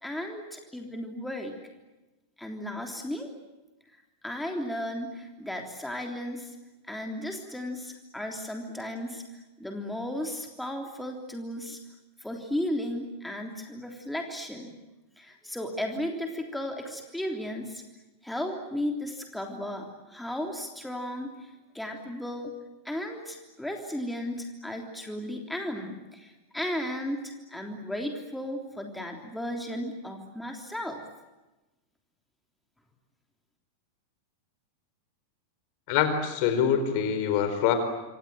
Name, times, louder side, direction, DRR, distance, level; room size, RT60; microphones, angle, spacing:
voice 1, 0.0-1.5 2.4-3.3 4.2-6.5 6.9-9.2 9.6-11.8 12.2-14.7 15.2-17.8 18.2-22.5 22.8-31.0, left 1 dB, 5° left, 2 dB, 3.3 m, -35 dB
voice 2, 35.9-37.7, left 8 dB, 45° left, 9 dB, 4.7 m, -25 dB
27.0 x 27.0 x 7.8 m, 1.1 s
figure-of-eight pair, 90°, 0 cm